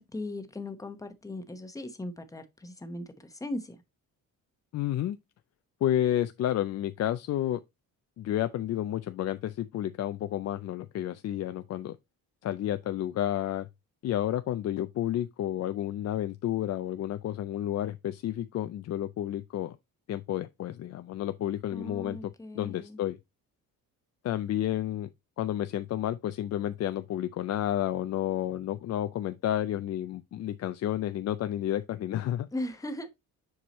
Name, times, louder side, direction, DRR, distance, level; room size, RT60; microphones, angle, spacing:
voice 1, 0.0-3.0 3.4-3.8 21.7-23.0 32.5-33.1, left 1 dB, 10° left, 0.9 m, -38 dB
voice 2, 4.7-5.2 5.8-7.6 8.2-12.0 12.4-13.7 14.0-19.8 20.1-23.2 24.2-25.1 25.4-32.5, left 12 dB, 50° left, 0.4 m, -31 dB
7.2 x 4.6 x 3.0 m
cardioid pair, 115°, 35 cm